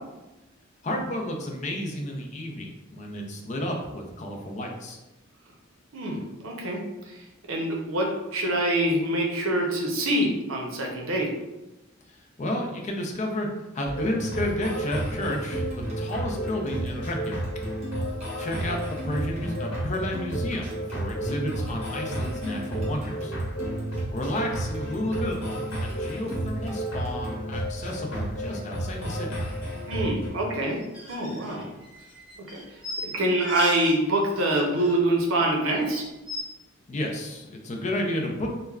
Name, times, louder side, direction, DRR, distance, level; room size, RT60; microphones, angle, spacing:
voice 1, 0.8-5.0 12.4-13.5 13.7-17.4 18.4-20.7 20.9-23.3 24.1-25.4 25.8-29.3 36.9-38.6, left 1 dB, 35° left, 1 dB, 0.4 m, -31 dB
voice 2, 5.9-6.8 7.1-11.3 29.9-30.8 31.1-31.7 32.4-32.6 33.0-36.0, right 1 dB, 85° right, 0 dB, 0.6 m, -25 dB
sound 1, 13.9-30.3, right 1 dB, 90° left, 1.0 m, -32 dB
sound 2, 15.1-27.4, right 1 dB, 35° right, 0.8 m, -42 dB
sound 3, 30.8-34.0 34.2-35.1 35.4-35.5 35.8-36.4, left 1 dB, 5° right, 1.1 m, -38 dB
3.3 x 2.1 x 2.3 m, 0.99 s
head